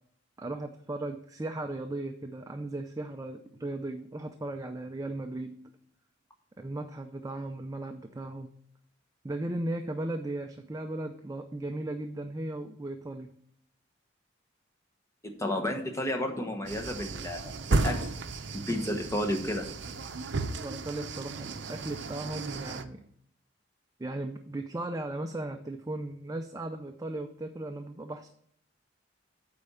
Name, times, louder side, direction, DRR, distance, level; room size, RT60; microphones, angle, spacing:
voice 1, 0.4-5.6 6.6-8.5 9.2-13.3 20.5-23.0 24.0-28.3, right 2 dB, 20° right, 6 dB, 0.4 m, -36 dB
voice 2, 15.2-18.1 18.7-19.7, left 1 dB, 15° left, 3 dB, 1.1 m, -32 dB
sound 1, 16.7-22.8, right 3 dB, 65° right, 0.6 m, -34 dB
8.5 x 4.3 x 6.9 m, 0.68 s
head